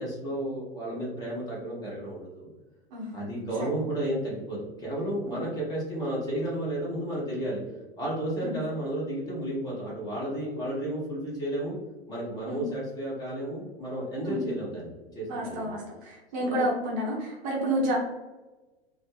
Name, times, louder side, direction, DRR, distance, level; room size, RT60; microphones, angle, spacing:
voice 1, 0.0-2.5 3.1-7.6 8.0-11.8 12.1-15.7 16.4-16.7, right 1 dB, 10° left, -6 dB, 0.6 m, -32 dB
voice 2, 15.3-18.0, right 1 dB, 30° right, -2 dB, 0.5 m, -30 dB
2.3 x 2.0 x 3.0 m, 1.2 s
figure-of-eight pair, 95°, 32 cm